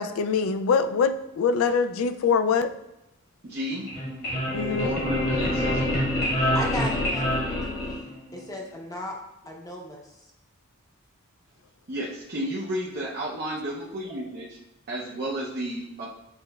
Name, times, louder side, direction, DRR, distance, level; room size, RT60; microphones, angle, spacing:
voice 1, 0.0-2.7 4.5-4.9, left 5 dB, 70° left, 10 dB, 0.3 m, -24 dB
voice 2, 3.4-3.9 4.8-6.0 11.9-14.6 14.9-16.1, equal, 45° right, -6 dB, 0.6 m, -32 dB
sound 1, 3.7-8.4, left 1 dB, 45° left, 1.4 m, -26 dB
voice 3, 6.5-9.1 9.5-10.0, left 1 dB, 15° left, 0 dB, 0.7 m, -36 dB
7.0 x 3.2 x 2.3 m, 0.87 s
head